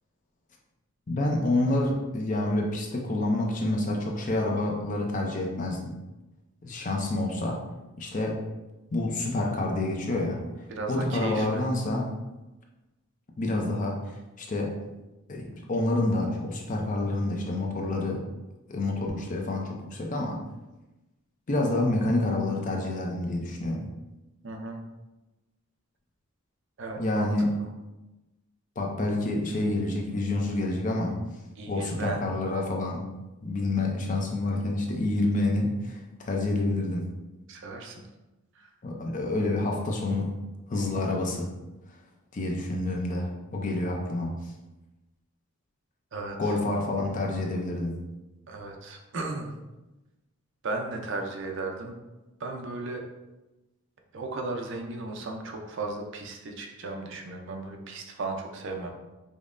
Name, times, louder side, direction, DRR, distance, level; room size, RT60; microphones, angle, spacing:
voice 1, 1.1-5.9 6.6-7.6 8.0-8.4 8.9-10.4 10.9-12.1 13.4-14.0 14.4-14.8 15.3-18.2 18.7-20.4 21.5-23.8 27.0-27.5 28.8-31.1 31.7-33.1 33.4-37.1 38.8-40.3 40.7-41.5 42.3-44.4 46.4-48.0, left 2 dB, 35° left, 1 dB, 0.4 m, -28 dB
voice 2, 10.7-11.7 24.4-24.8 26.8-27.3 27.6-27.7 31.6-32.2 37.5-38.1 38.6-38.7 46.1-46.5 48.5-49.5 50.6-52.0 52.4-53.0 54.1-58.9, right 3 dB, 55° right, 3 dB, 0.5 m, -35 dB
5.1 x 2.1 x 2.5 m, 1.0 s
head